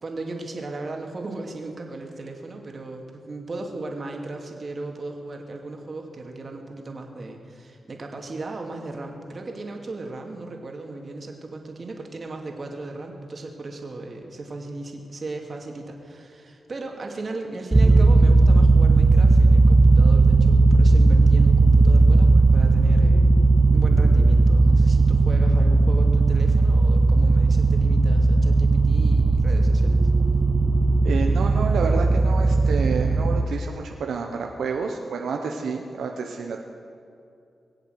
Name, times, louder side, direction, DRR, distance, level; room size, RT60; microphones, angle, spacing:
voice 1, 0.0-23.3 23.7-30.0, right 2 dB, 50° right, 2 dB, 2.5 m, -36 dB
sound 1, 17.7-33.4, right 3 dB, 25° right, 0.7 m, -17 dB
voice 2, 31.0-36.6, right 5 dB, 85° right, 2 dB, 1.0 m, -29 dB
22.0 x 7.9 x 8.0 m, 2.5 s
cardioid pair, 65°, 0 cm